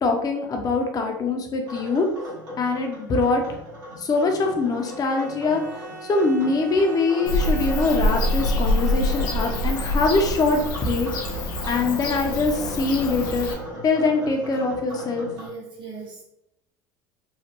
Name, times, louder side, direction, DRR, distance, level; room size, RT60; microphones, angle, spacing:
voice 1, 0.0-2.1 2.6-3.4 4.0-5.6 6.1-11.1 11.7-13.5 13.8-15.3, left 3 dB, 35° left, 3 dB, 0.6 m, -23 dB
sound 1, 1.7-15.5, equal, 85° right, 1.4 m, -38 dB
Bowed string instrument, 4.8-10.0, right 3 dB, 30° right, 0.8 m, -40 dB
Bird / Cricket, 7.3-13.5, left 1 dB, 90° left, 0.6 m, -25 dB
voice 2, 15.4-16.2, right 4 dB, 50° right, -2 dB, 1.3 m, -38 dB
3.1 x 2.1 x 2.9 m, 0.81 s
supercardioid pair, 85°, 10 cm